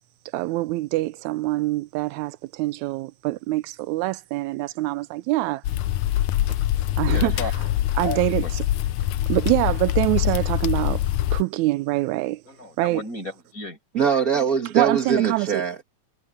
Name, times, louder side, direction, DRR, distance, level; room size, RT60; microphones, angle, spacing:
voice 1, 0.3-5.6 7.0-7.5 8.0-8.6 9.3-11.0 11.3-12.4 12.8-13.0 14.7-15.6, right 19 dB, 85° right, 1.9 m, -24 dB
sound 1, 5.6-11.4, left 13 dB, 90° left, 2.1 m, -24 dB
voice 2, 7.1-7.7 8.0-8.5 12.4-13.8, left 2 dB, 25° left, 6.8 m, -34 dB
voice 3, 13.9-15.8, right 6 dB, 45° right, 1.2 m, -22 dB
omnidirectional pair, 3.3 m